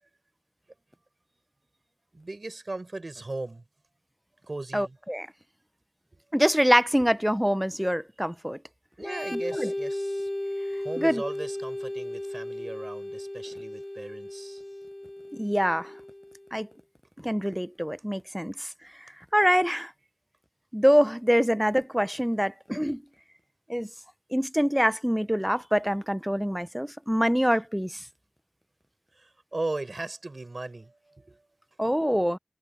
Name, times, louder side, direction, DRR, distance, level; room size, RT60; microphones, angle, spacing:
voice 1, 2.1-3.6 4.5-5.0 6.1-6.2 7.0-7.1 9.0-10.3 10.8-14.6 29.2-31.4, right 2 dB, 55° right, 5.2 m, -37 dB
voice 2, 4.7-5.3 6.3-8.6 9.3-9.7 11.0-11.2 15.3-15.9 16.5-16.7 17.2-18.7 19.3-19.9 20.7-23.0 23.7-23.9 24.3-28.0 31.8-32.4, equal, 5° right, 0.7 m, -25 dB
Organ, 9.0-16.5, left 1 dB, 25° left, 2.7 m, -35 dB
wide cardioid pair, 65°, 0 cm